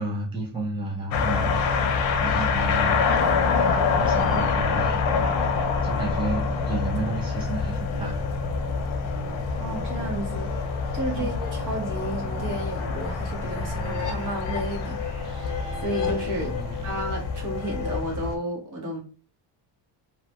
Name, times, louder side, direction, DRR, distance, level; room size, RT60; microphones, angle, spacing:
voice 1, 0.0-1.6 2.1-3.0 4.0-5.5 5.8-8.2 11.2-11.3 16.3-17.0, right 2 dB, 10° right, 0.5 m, -32 dB
sound 1, 1.1-18.3, left 5 dB, 80° left, 0.7 m, -26 dB
sound 2, 1.2-3.0 3.4-16.9, right 6 dB, 65° right, 0.7 m, -43 dB
sound 3, 6.9-18.0, left 5 dB, 45° left, 0.8 m, -37 dB
voice 2, 9.6-15.4 15.7-16.5 16.8-19.0, right 1 dB, 45° right, 1.2 m, -32 dB
2.9 x 2.2 x 2.9 m
cardioid pair, 140°, 43 cm